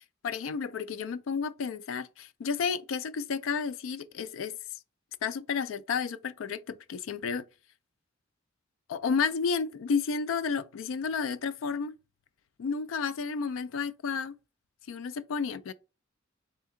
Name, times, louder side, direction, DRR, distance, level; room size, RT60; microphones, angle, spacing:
voice 1, 0.2-4.6 5.2-7.4 8.9-11.9 12.6-14.3 14.9-15.7, left 5 dB, 85° left, 0.3 m, -31 dB
3.3 x 2.7 x 3.6 m
head